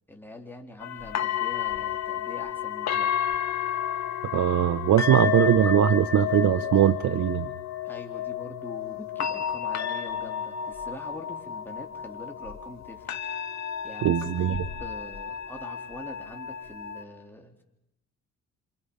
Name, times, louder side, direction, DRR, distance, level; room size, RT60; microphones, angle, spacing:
voice 1, 0.1-3.1 7.8-13.2 13.8-17.6, left 1 dB, 5° left, 2 dB, 3.7 m, -44 dB
sound 1, 0.8-17.0, left 9 dB, 60° left, 2.3 m, -31 dB
voice 2, 4.3-7.5 14.0-14.6, right 11 dB, 70° right, 13 dB, 0.9 m, -21 dB
28.5 x 27.0 x 5.6 m, 0.82 s
cardioid pair, 90°, 30 cm